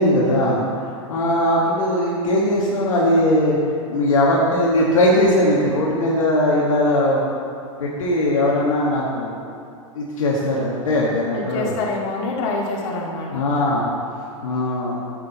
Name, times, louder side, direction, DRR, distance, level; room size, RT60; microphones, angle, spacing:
voice 1, 0.0-3.6 3.9-7.3 7.8-9.3 9.9-11.7 13.3-13.9 14.4-15.0, left 1 dB, 75° left, -5 dB, 1.6 m, -19 dB
voice 2, 11.3-13.4, left 3 dB, 55° left, -2 dB, 2.0 m, -26 dB
11.0 x 8.0 x 4.0 m, 2.4 s
hypercardioid pair, 105°, 17 cm